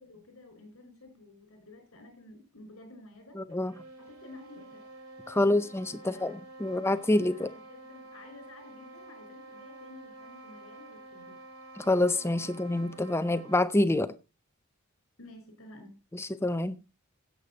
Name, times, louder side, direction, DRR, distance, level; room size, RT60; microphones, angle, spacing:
voice 1, 0.0-3.4 4.0-4.8 5.3-5.6 6.0-6.3 7.3-11.4 15.2-16.0, left 2 dB, 65° left, 5.0 m, -52 dB
voice 2, 3.4-3.7 5.3-7.5 11.8-14.1 16.1-16.8, left 1 dB, 10° left, 0.6 m, -27 dB
sound 1, 3.5-13.8, right 2 dB, 75° right, 2.9 m, -49 dB
16.0 x 6.9 x 4.0 m
head